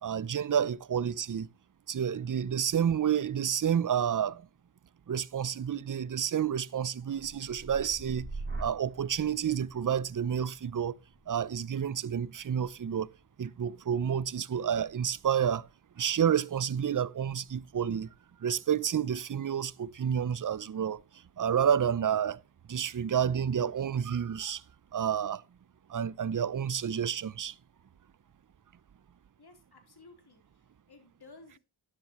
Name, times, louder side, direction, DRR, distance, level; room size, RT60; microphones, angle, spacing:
voice 1, 0.0-1.5 1.9-4.4 5.1-8.3 8.6-11.0 11.3-13.1 13.4-15.7 16.0-18.1 18.4-21.0 21.4-22.4 22.7-24.6 24.9-25.4 25.9-27.5, right 8 dB, 40° right, 0.7 m, -29 dB
sound 1, 7.0-14.9 15.3-15.8, right 2 dB, 25° right, 6.0 m, -46 dB
voice 2, 29.4-31.6, left 3 dB, 50° left, 4.0 m, -56 dB
13.0 x 9.8 x 3.1 m
cardioid pair, 60°, 49 cm